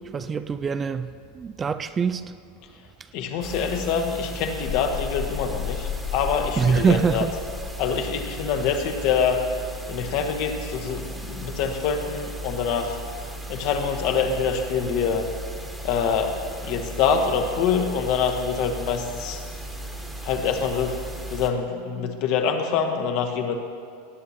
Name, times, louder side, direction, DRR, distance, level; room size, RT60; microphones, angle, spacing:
voice 1, 0.1-2.2 6.6-7.3, right 6 dB, 25° right, 0.4 m, -24 dB
voice 2, 3.1-7.3 7.8-9.5 9.9-13.0 13.5-15.3 15.8-19.4 20.2-21.0 21.3-23.5, left 6 dB, 55° left, 1.2 m, -25 dB
sound 1, 3.4-21.5, right 1 dB, 5° right, 1.3 m, -36 dB
sound 2, 4.6-8.3, left 10 dB, 40° left, 0.5 m, -34 dB
18.0 x 9.2 x 2.8 m
hypercardioid pair, 95°, 0 cm